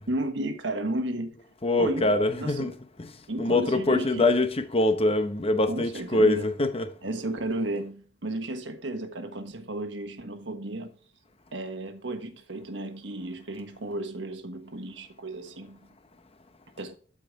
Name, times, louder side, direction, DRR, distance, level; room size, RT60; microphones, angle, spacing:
voice 1, 0.1-1.4 1.7-2.1 2.4-2.7 3.3-4.3 5.7-6.5 7.0-10.9 11.5-15.8 16.8-17.0, right 1 dB, 75° right, 1.4 m, -33 dB
voice 2, 1.6-2.7 3.0-3.1 3.4-6.9, left 2 dB, 35° left, 0.9 m, -24 dB
12.0 x 4.9 x 3.6 m
head